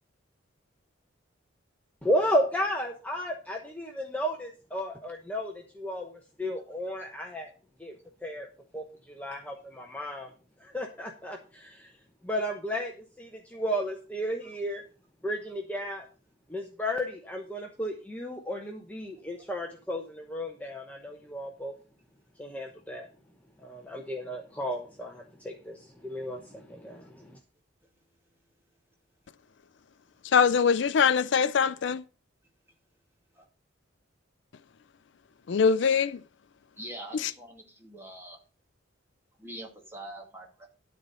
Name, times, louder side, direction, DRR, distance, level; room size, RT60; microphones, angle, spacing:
voice 1, 2.0-7.5 7.8-8.5 8.7-10.3 10.6-11.9 12.2-14.8 15.2-16.1 16.5-21.7 22.4-23.1 23.6-27.4, equal, 5° left, 1.0 m, -33 dB
voice 2, 30.3-32.0 35.5-36.2, left 6 dB, 65° left, 0.4 m, -22 dB
voice 3, 36.8-38.4 39.4-40.7, right 1 dB, 10° right, 2.4 m, -44 dB
12.5 x 4.2 x 6.7 m
head